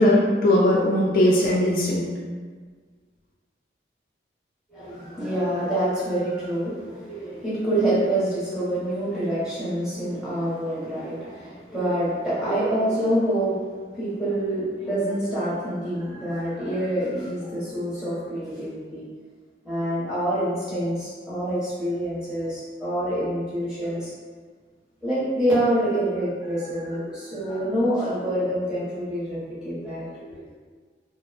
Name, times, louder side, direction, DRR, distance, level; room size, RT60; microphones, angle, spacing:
voice 1, 0.0-2.1, left 1 dB, 50° left, -4 dB, 0.3 m, -19 dB
voice 2, 4.7-13.6 13.9-19.1 19.6-24.1 25.0-30.5, right 1 dB, 5° right, -11 dB, 0.7 m, -26 dB
2.6 x 2.0 x 2.4 m, 1.5 s
head